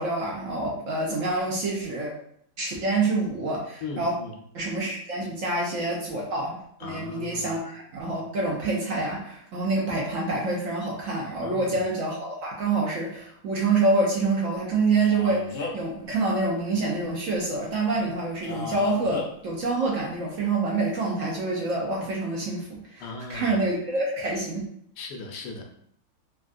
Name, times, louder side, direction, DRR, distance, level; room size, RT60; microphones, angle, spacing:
voice 1, 0.0-2.1 2.6-4.1 4.5-24.7, right 3 dB, 65° right, -3 dB, 0.8 m, -27 dB
voice 2, 3.8-4.3 6.8-7.6 11.4-11.8 23.0-23.6 25.0-25.6, left 3 dB, 85° left, 2 dB, 1.2 m, -38 dB
Male speech man speaking, 15.0-15.9 18.4-19.3, left 3 dB, 60° left, 1.0 m, -34 dB
3.5 x 2.2 x 2.5 m, 0.67 s
omnidirectional pair, 1.7 m